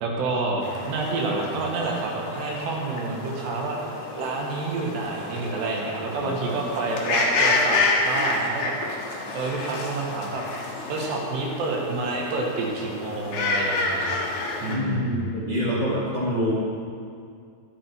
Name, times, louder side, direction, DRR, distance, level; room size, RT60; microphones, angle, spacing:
voice 1, 0.0-3.8 4.2-8.7 9.3-10.4 10.9-14.2 14.6-15.1, right 3 dB, 85° right, -1 dB, 3.9 m, -28 dB
sound 1, 0.6-14.8, left 3 dB, 75° left, 3.6 m, -29 dB
voice 2, 6.1-6.5 14.7-16.5, equal, 15° left, -7 dB, 2.1 m, -26 dB
12.5 x 12.0 x 4.6 m, 2.3 s
omnidirectional pair, 4.7 m